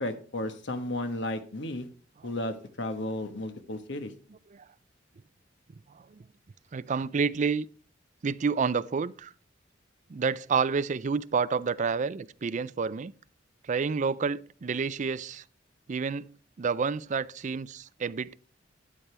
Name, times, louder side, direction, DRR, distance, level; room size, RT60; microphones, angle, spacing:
voice 1, 0.0-1.9 2.2-4.1, left 1 dB, 65° left, 1.2 m, -33 dB
voice 2, 6.7-7.7 8.2-9.3 10.1-13.1 13.6-15.4 15.9-16.3 16.6-18.4, right 5 dB, 40° right, 0.4 m, -29 dB
12.5 x 8.8 x 3.3 m
head